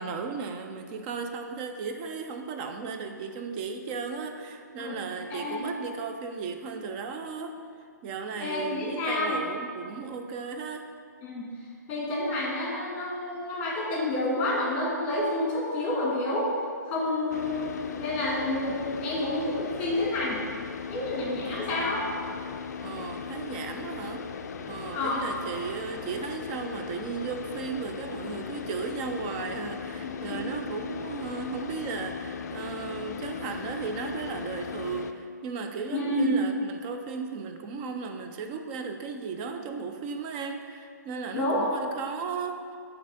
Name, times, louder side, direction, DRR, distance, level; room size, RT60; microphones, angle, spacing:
voice 1, 0.0-7.6 8.0-10.9 21.4-21.9 22.8-24.3 24.7-42.6, right 5 dB, 30° right, 5 dB, 0.5 m, -35 dB
voice 2, 5.3-5.6 8.4-9.4 11.2-11.5 11.9-16.5 16.8-17.7 18.0-20.4 20.9-22.0 24.9-25.3 30.0-30.4 35.9-36.4 41.3-41.7, left 1 dB, 15° left, -4 dB, 1.6 m, -29 dB
Car / Idling, 17.3-35.1, left 6 dB, 60° left, 0.4 m, -38 dB
6.2 x 3.5 x 5.2 m, 2.2 s
hypercardioid pair, 135°, 10 cm